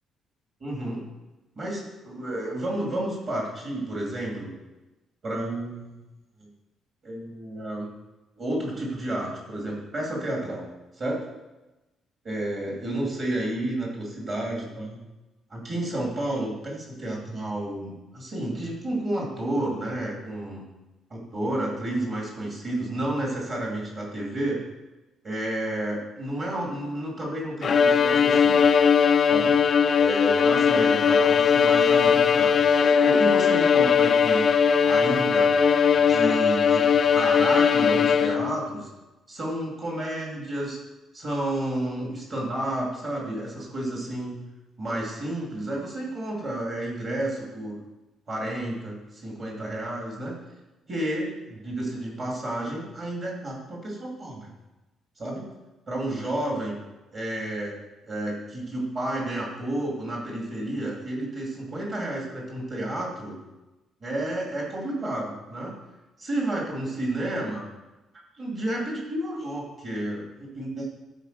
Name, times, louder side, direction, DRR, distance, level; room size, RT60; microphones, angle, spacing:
voice 1, 0.6-1.0 1.6-4.5 5.2-6.0 6.4-6.5 7.0-7.9 8.4-10.7 11.0-11.2 12.2-15.0 15.5-20.6 21.1-24.6 25.2-28.7 29.3-29.6 29.9-34.5 34.8-35.5 35.9-38.9 39.3-40.8 41.1-44.4 44.8-47.8 48.3-50.4 50.9-54.5 55.2-55.5 55.9-56.8 57.1-57.8 58.0-63.4 64.0-65.7 66.2-67.6 68.3-71.0, right 1 dB, 30° right, -2 dB, 2.8 m, -31 dB
Bowed string instrument, 27.6-38.6, left 6 dB, 30° left, 0.4 m, -19 dB
12.0 x 5.1 x 6.8 m, 1.1 s
cardioid pair, 175°, 0 cm